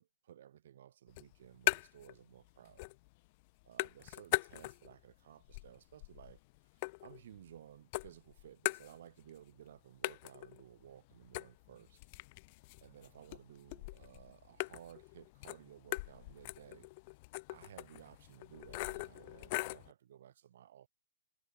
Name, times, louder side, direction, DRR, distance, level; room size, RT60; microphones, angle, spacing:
voice 1, 0.0-2.8 3.6-6.4 7.0-12.0 12.8-16.9 17.5-20.9, right 10 dB, 60° right, 5.6 m, -57 dB
sound 1, 1.1-2.2 2.5-3.1 3.4-5.0 5.4-7.6 7.9-9.4 9.6-9.7 10.0-19.9, left 25 dB, 40° left, 1.3 m, -41 dB
hypercardioid pair, 135°, 0 cm